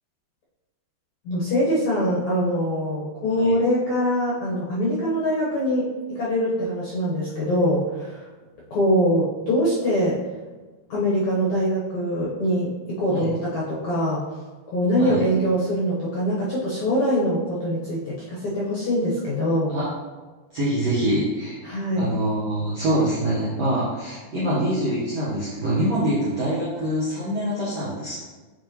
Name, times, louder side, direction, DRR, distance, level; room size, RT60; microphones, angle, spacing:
voice 1, 1.2-8.3 8.7-10.2 10.9-14.2 14.7-19.7 21.6-22.1, equal, 65° left, -7 dB, 1.8 m, -23 dB
voice 2, 20.5-21.5 22.0-28.2, right 1 dB, 65° right, -9 dB, 1.6 m, -24 dB
7.6 x 5.0 x 3.0 m, 1.3 s
omnidirectional pair, 4.8 m